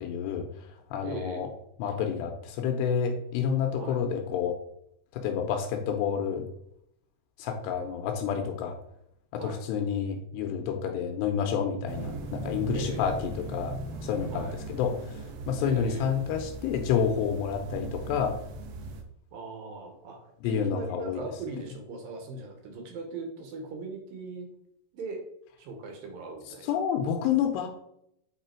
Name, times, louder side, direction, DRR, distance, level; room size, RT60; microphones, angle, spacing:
voice 1, 0.0-1.5 1.8-4.6 5.1-6.5 7.4-8.8 9.3-13.7 14.0-18.4 20.4-21.2 26.7-27.7, left 7 dB, 85° left, 4 dB, 2.8 m, -29 dB
voice 2, 1.0-1.5 3.8-4.0 9.4-9.6 12.7-13.1 14.3-14.6 15.6-16.1 19.3-24.5 24.9-25.2 25.6-26.8, right 3 dB, 70° right, 3 dB, 2.4 m, -39 dB
sound 1, 11.9-19.0, right 2 dB, 90° right, 2.9 m, -39 dB
8.3 x 3.4 x 4.3 m, 0.74 s
omnidirectional pair, 4.8 m